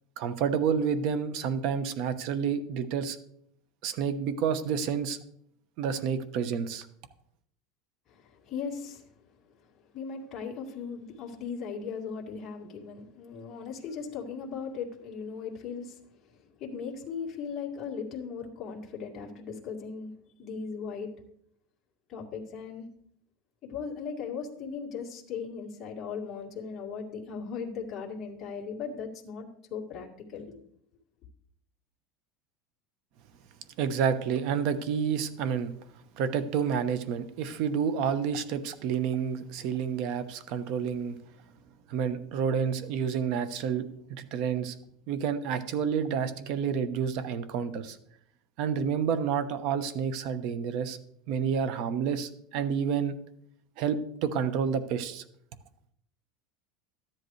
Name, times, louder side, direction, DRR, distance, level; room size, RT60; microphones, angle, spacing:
voice 1, 0.2-3.2 3.8-5.2 5.8-6.9 33.8-35.7 36.2-41.2 41.9-44.7 45.1-48.0 48.6-51.0 51.3-53.2 53.8-55.2, right 7 dB, 50° right, 13 dB, 0.9 m, -29 dB
voice 2, 8.1-9.1 9.6-9.7 9.9-16.0 16.3-21.1 22.1-22.9 23.6-30.6, left 6 dB, 30° left, -2 dB, 2.1 m, -38 dB
13.5 x 10.5 x 3.2 m, 0.70 s
supercardioid pair, 160°, 0 cm